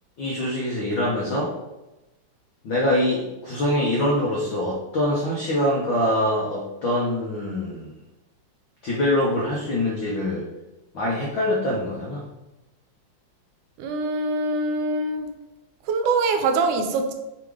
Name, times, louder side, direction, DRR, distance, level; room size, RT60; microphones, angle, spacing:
voice 1, 0.2-1.5 2.6-7.9 8.8-10.4 10.9-12.3, left 1 dB, 75° left, -4 dB, 1.1 m, -24 dB
voice 2, 13.8-15.3 15.8-17.1, right 3 dB, 80° right, 6 dB, 2.1 m, -23 dB
5.8 x 3.5 x 4.8 m, 1.0 s
omnidirectional pair, 3.5 m